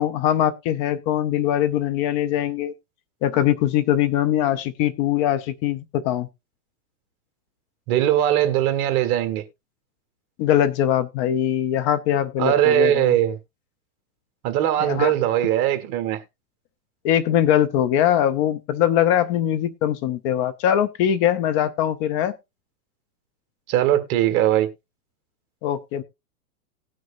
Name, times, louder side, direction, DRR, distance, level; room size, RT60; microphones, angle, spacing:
voice 1, 0.0-2.7 3.2-6.3 10.4-13.1 14.8-15.1 17.0-22.4 25.6-26.0, left 11 dB, 25° left, 0.5 m, -22 dB
voice 2, 7.9-9.4 12.4-13.4 14.4-16.2 23.7-24.7, right 12 dB, 40° right, 1.7 m, -20 dB
18.5 x 6.3 x 2.5 m
hypercardioid pair, 135°, 43 cm